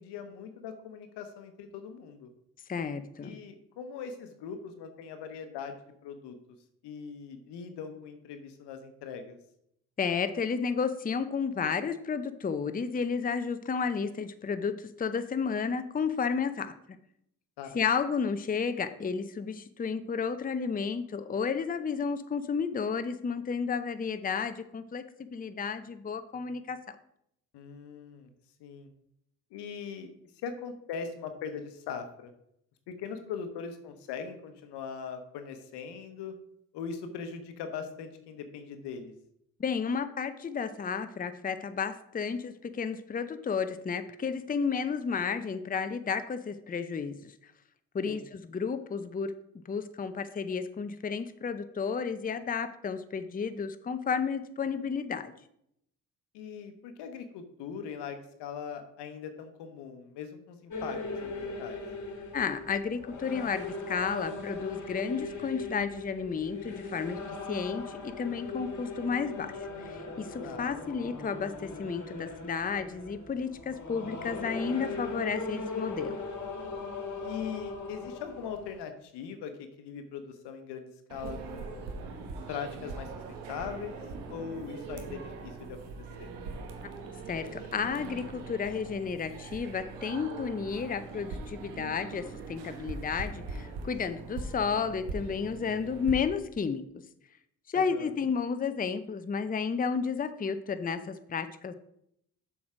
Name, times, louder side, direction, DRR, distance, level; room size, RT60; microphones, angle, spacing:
voice 1, 0.0-2.3 3.2-5.8 6.0-6.4 6.8-9.4 17.6-17.8 27.5-28.3 28.6-28.9 29.5-30.1 30.4-32.3 32.9-36.3 36.7-39.1 48.0-48.2 56.3-61.8 70.4-70.7 77.2-81.9 82.5-84.0 84.3-85.8 86.2-86.3 97.7-98.1, left 6 dB, 75° left, 8 dB, 1.0 m, -40 dB
voice 2, 2.7-3.4 10.0-17.0 17.7-26.9 39.6-47.3 47.9-49.3 49.7-55.3 62.3-67.2 67.5-76.1 87.3-96.8 97.7-101.7, left 6 dB, 20° left, 11 dB, 0.6 m, -32 dB
sound 1, 60.7-78.8, left 3 dB, 45° left, 1.6 m, -39 dB
sound 2, 81.1-96.2, right 4 dB, 75° right, 1.1 m, -41 dB
7.1 x 4.7 x 4.9 m, 0.76 s
hypercardioid pair, 40°, 42 cm